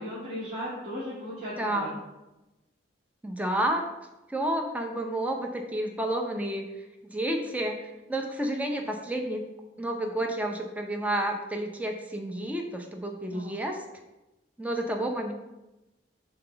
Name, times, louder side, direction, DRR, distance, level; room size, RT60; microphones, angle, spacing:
voice 1, 0.0-1.9 13.3-13.5, equal, 45° right, -11 dB, 2.1 m, -36 dB
voice 2, 1.6-2.0 3.2-3.9 4.3-6.7 7.1-9.5 9.8-13.8 14.6-15.3, right 1 dB, 10° right, 2 dB, 0.6 m, -30 dB
5.8 x 3.9 x 5.7 m, 0.97 s
head